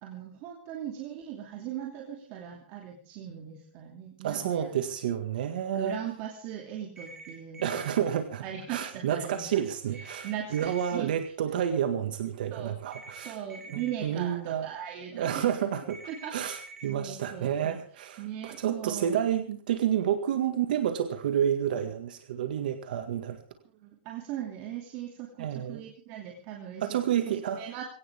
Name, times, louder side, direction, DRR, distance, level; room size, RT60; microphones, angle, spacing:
voice 1, 0.0-4.7 5.7-11.1 12.5-12.8 13.1-15.5 16.1-16.4 16.9-17.8 18.2-19.2 23.8-26.9 27.3-27.8, right 10 dB, 30° right, 1 dB, 2.7 m, -39 dB
voice 2, 4.2-6.0 7.6-8.4 8.7-13.4 13.7-14.7 15.1-16.0 16.3-23.4 25.4-25.8 26.8-27.6, right 9 dB, 55° right, 7 dB, 1.9 m, -30 dB
sound 1, 7.0-8.0 9.9-10.9 12.9-13.9 15.9-16.9, right 3 dB, 10° right, 4.0 m, -46 dB
21.0 x 17.5 x 3.6 m, 0.40 s
hypercardioid pair, 170°, 6 cm